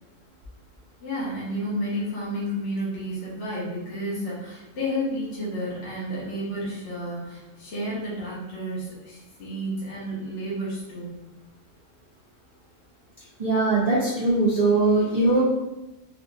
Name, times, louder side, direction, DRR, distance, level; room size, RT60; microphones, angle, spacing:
voice 1, 1.0-11.2, equal, 50° left, -8 dB, 1.1 m, -31 dB
voice 2, 13.4-15.4, right 2 dB, 80° right, -8 dB, 0.3 m, -21 dB
3.9 x 2.7 x 2.2 m, 1.0 s
omnidirectional pair, 1.6 m